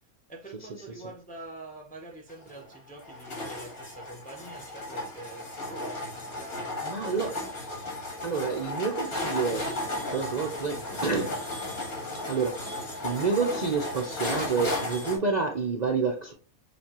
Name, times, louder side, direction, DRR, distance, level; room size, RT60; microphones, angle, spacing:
voice 1, 0.3-7.4, right 2 dB, 10° left, 0.6 m, -46 dB
sound 1, 2.3-15.2, left 2 dB, 75° left, 2.4 m, -35 dB
voice 2, 6.8-7.3 8.2-9.7 10.1-11.4 12.1-12.6 13.0-16.3, right 5 dB, 40° right, 0.6 m, -28 dB
6.8 x 2.6 x 2.9 m
omnidirectional pair, 1.5 m